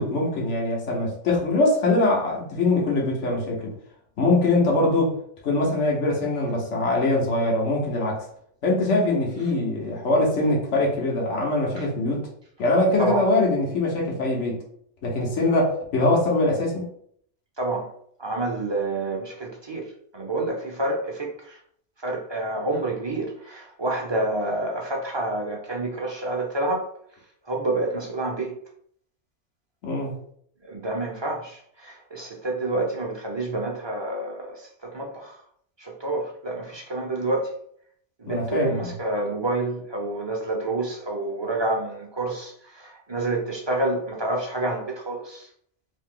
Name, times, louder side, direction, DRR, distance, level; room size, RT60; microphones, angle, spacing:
voice 1, 0.0-3.7 4.2-5.1 5.4-8.2 8.6-12.3 12.6-14.6 15.0-16.9 29.8-30.1 38.2-38.9, left 2 dB, 90° left, -2 dB, 1.3 m, -23 dB
voice 2, 17.6-17.9 18.2-19.8 20.1-21.6 22.0-26.9 27.5-28.5 30.7-35.4 35.8-37.5 38.2-45.5, right 2 dB, 30° right, 0 dB, 0.5 m, -28 dB
3.0 x 2.7 x 3.7 m, 0.64 s
omnidirectional pair, 1.2 m